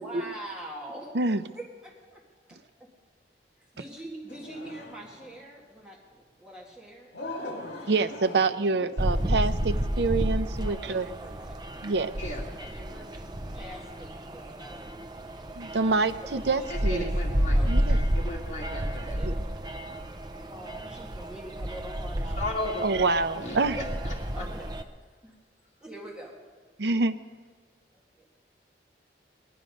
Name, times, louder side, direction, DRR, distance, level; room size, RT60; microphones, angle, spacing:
voice 1, 0.0-1.1 1.5-2.9 3.6-7.1 10.6-11.6 12.6-14.9 16.2-18.1 18.9-20.0 20.5-22.4 24.1-24.8 25.2-25.4 25.8-26.4 28.1-28.3, right 1 dB, 5° right, -4 dB, 1.7 m, -44 dB
sound 1, 4.3-5.5 7.1-9.7, left 2 dB, 70° left, 1.9 m, -41 dB
voice 2, 7.9-11.1 11.8-12.1 15.6-17.2 17.6-18.0 19.3-19.4 22.8-23.8 26.8-27.2, right 3 dB, 70° right, 12 dB, 0.6 m, -26 dB
sound 2, 9.0-24.8, equal, 25° right, 0.6 m, -31 dB
voice 3, 16.7-17.6 18.1-19.2 22.4-22.8 23.4-24.1, left 1 dB, 40° left, -4 dB, 2.6 m, -35 dB
19.5 x 11.0 x 5.2 m, 1.6 s
head